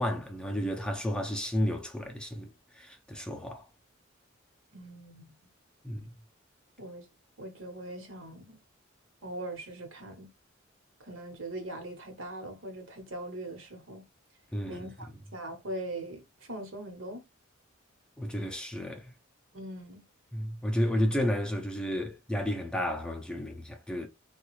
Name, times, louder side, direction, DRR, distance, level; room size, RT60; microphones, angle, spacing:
voice 1, 0.0-3.7 5.8-6.1 14.5-14.9 18.2-19.1 20.3-24.1, equal, 5° left, 0.4 m, -32 dB
voice 2, 4.7-5.3 6.8-7.1 7.4-8.6 9.2-10.3 11.0-14.0 14.7-16.2 16.5-17.2 19.5-20.0, right 1 dB, 70° right, 1.1 m, -41 dB
3.4 x 2.3 x 3.0 m
head